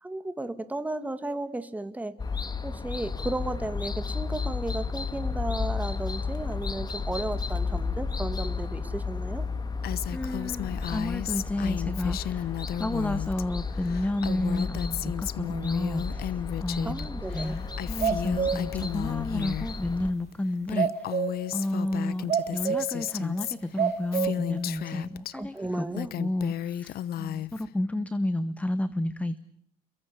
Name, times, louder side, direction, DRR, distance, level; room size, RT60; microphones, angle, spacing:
voice 1, 0.0-2.1 2.6-9.5 16.8-17.6 25.3-26.1, right 2 dB, 10° right, 10 dB, 2.1 m, -34 dB
sound 1, 2.2-20.1, left 4 dB, 25° left, 1.6 m, -33 dB
Female speech woman speaking, 9.8-13.4 13.7-17.0 17.3-19.7 20.3-20.4 20.6-25.3 25.8-27.7, left 11 dB, 65° left, 1.1 m, -34 dB
voice 2, 10.1-17.6 17.9-21.2 21.5-25.9 26.2-29.4, left 1 dB, 10° left, 14 dB, 1.1 m, -31 dB
sound 2, 17.7-18.7 19.1-19.2 20.8-21.5 22.3-23.1 23.4-23.5 23.8-24.6 24.9-25.0, right 7 dB, 40° right, 2.5 m, -28 dB
30.0 x 22.5 x 8.4 m, 0.71 s
cardioid pair, 110°, 17 cm